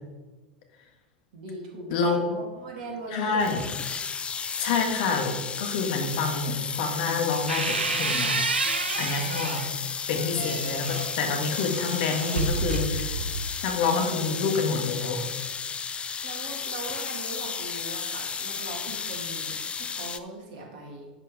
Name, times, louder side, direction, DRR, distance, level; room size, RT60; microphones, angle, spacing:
voice 1, 1.3-3.5 16.2-21.1, right 2 dB, 60° right, -1 dB, 2.9 m, -39 dB
voice 2, 1.9-2.2 3.1-3.6 4.6-8.4 9.0-9.7 10.1-13.2 13.6-15.3, left 4 dB, 55° left, 3 dB, 1.8 m, -27 dB
sound 1, 3.4-20.2, left 6 dB, 20° left, 0.5 m, -33 dB
sound 2, 7.1-9.7 10.2-13.5, right 4 dB, 80° right, 0.9 m, -30 dB
10.5 x 7.6 x 3.5 m, 1.2 s
figure-of-eight pair, 85°, 5 cm